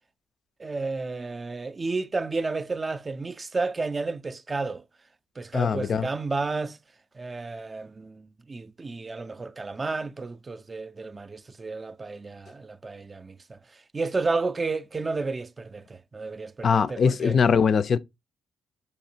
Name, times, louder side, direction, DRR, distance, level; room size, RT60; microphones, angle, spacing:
voice 1, 0.6-4.8 5.4-6.8 7.1-13.6 13.9-17.4, right 3 dB, 25° right, 0.3 m, -32 dB
voice 2, 5.5-6.1 16.6-18.0, left 6 dB, 50° left, 0.4 m, -22 dB
6.6 x 2.7 x 2.7 m
cardioid pair, 90°, 0 cm